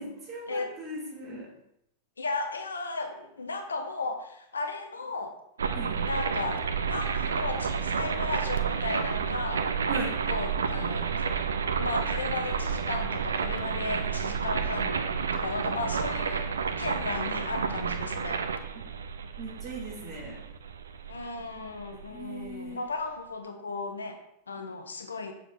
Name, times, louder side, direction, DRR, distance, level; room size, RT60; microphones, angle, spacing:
voice 1, 0.0-1.5 5.7-6.0 9.9-10.2 19.4-20.4 22.1-22.9, right 2 dB, 30° right, -4 dB, 2.4 m, -38 dB
voice 2, 2.2-5.3 6.1-6.6 6.9-9.7 10.3-11.2 11.8-15.1 15.3-18.4 21.1-24.2 24.5-25.3, left 3 dB, 75° left, 5 dB, 0.7 m, -35 dB
sound 1, 5.6-22.5, right 6 dB, 70° right, 0.3 m, -30 dB
6.9 x 5.3 x 2.6 m, 0.79 s
figure-of-eight pair, 90°, 0 cm